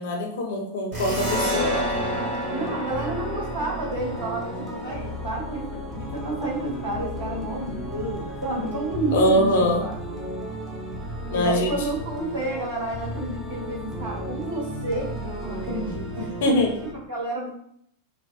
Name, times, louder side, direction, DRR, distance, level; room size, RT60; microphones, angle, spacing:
voice 1, 0.0-1.9 9.1-9.8 11.3-11.8 16.4-16.7, left 1 dB, 55° left, 1 dB, 0.5 m, -23 dB
sound 1, 0.9-16.9, right 1 dB, 10° right, 0.6 m, -34 dB
sound 2, 0.9-8.1, equal, 45° right, 1.3 m, -32 dB
voice 2, 2.5-10.2 11.3-17.6, right 1 dB, 75° right, -8 dB, 1.5 m, -30 dB
2.7 x 2.1 x 2.2 m, 0.68 s
figure-of-eight pair, 90°, 0 cm